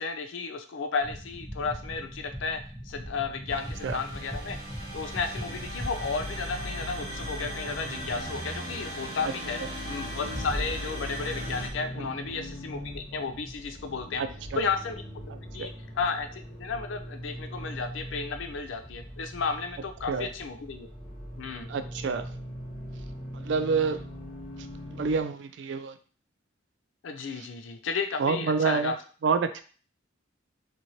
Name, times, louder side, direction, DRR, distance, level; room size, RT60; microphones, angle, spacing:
voice 1, 0.0-4.6 4.9-9.6 9.9-14.2 14.5-15.0 15.5-20.9 21.4-21.7 27.0-28.9, left 5 dB, 80° left, 8 dB, 0.4 m, -33 dB
sound 1, 1.0-8.4, equal, ahead, 0.7 m, -40 dB
sound 2, 3.5-11.7, equal, 50° right, 0.9 m, -38 dB
Accelerating revving vroom, 7.7-25.2, equal, 20° left, 1.0 m, -41 dB
voice 2, 14.2-14.6 15.5-15.7 20.1-20.3 21.7-22.2 23.3-24.0 24.9-26.0 28.2-28.9 29.2-29.6, right 5 dB, 65° right, 10 dB, 0.3 m, -28 dB
3.0 x 2.5 x 2.7 m, 0.40 s
head